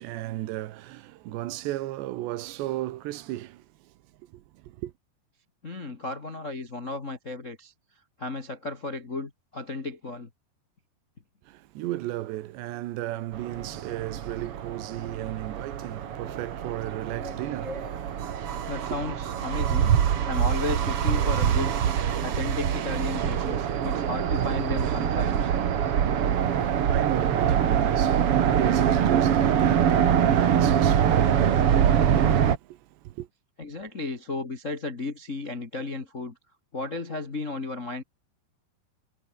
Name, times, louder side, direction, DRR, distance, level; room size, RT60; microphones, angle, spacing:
voice 1, 0.0-3.9 4.3-4.9 11.5-17.9 18.3-19.0 26.2-33.3, right 15 dB, 80° right, 3.4 m, -35 dB
voice 2, 5.6-7.7 8.2-10.3 17.1-17.9 18.7-19.9 20.3-21.7 22.2-25.5 33.6-36.4 36.7-38.0, left 3 dB, 65° left, 0.7 m, -34 dB
sound 1, 13.3-32.6, right 9 dB, 60° right, 1.5 m, -24 dB
omnidirectional pair, 5.0 m